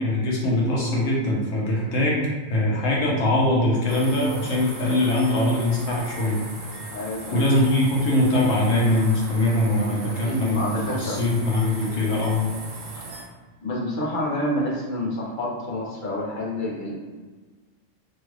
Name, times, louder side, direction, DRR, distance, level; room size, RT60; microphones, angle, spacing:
voice 1, 0.0-6.4 7.3-12.4, left 1 dB, 85° left, -4 dB, 1.2 m, -22 dB
sound 1, 3.9-13.2, right 3 dB, 85° right, 1.0 m, -39 dB
voice 2, 6.9-7.4 9.7-11.2 11.9-12.1 13.6-16.9, left 1 dB, 50° left, -4 dB, 0.8 m, -28 dB
3.1 x 3.0 x 2.4 m, 1.4 s
omnidirectional pair, 1.3 m